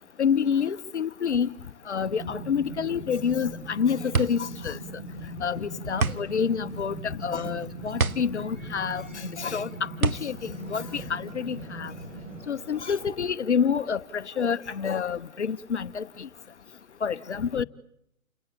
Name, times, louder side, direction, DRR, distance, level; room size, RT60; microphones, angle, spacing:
voice 1, 0.2-1.5 1.9-4.8 5.4-7.0 7.2-9.7 10.0-10.4 10.7-11.9 12.5-16.3 17.0-17.6, left 7 dB, 55° left, 0.9 m, -28 dB
sound 1, 2.0-12.4, right 1 dB, 25° right, 4.1 m, -40 dB
sound 2, 3.3-11.7, right 4 dB, 90° right, 0.9 m, -30 dB
voice 2, 5.1-6.4 7.2-7.8 8.1-8.2 9.5-11.2 11.5-11.6 14.7-15.0, left 1 dB, ahead, 1.0 m, -53 dB
sound 3, 5.5-13.1, right 3 dB, 65° right, 2.6 m, -49 dB
29.0 x 18.0 x 8.8 m
figure-of-eight pair, 140°, 41 cm